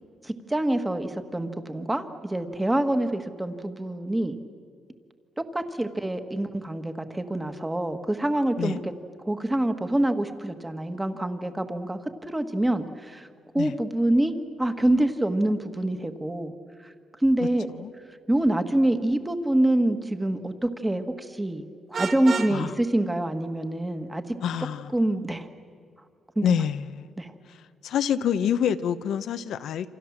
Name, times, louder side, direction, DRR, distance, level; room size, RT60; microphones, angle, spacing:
voice 1, 0.2-4.4 5.4-8.9 9.2-12.0 12.3-13.3 13.5-14.3 14.6-16.5 17.2-17.7 18.3-24.3 24.9-25.5 26.3-26.6 27.2-27.3, right 1 dB, 10° right, 8 dB, 1.7 m, -26 dB
Vehicle horn car horn honking, 21.9-22.6, right 5 dB, 40° right, 1.8 m, -30 dB
voice 2, 24.4-24.9 26.4-27.1 27.8-29.9, left 9 dB, 80° left, 11 dB, 1.0 m, -26 dB
28.5 x 26.5 x 7.4 m, 2.3 s
cardioid pair, 135°, 0 cm